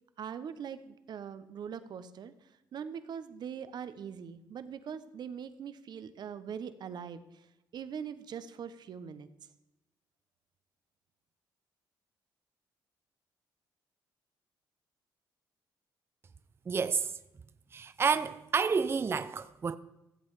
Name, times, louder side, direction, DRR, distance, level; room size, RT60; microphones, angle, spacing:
voice 1, 0.2-2.3 2.7-7.5 7.7-9.3, right 7 dB, 60° right, 1.0 m, -42 dB
voice 2, 16.7-17.1 17.7-19.8, right 5 dB, 30° right, 0.5 m, -29 dB
15.0 x 7.9 x 4.9 m
cardioid pair, 100°, 8 cm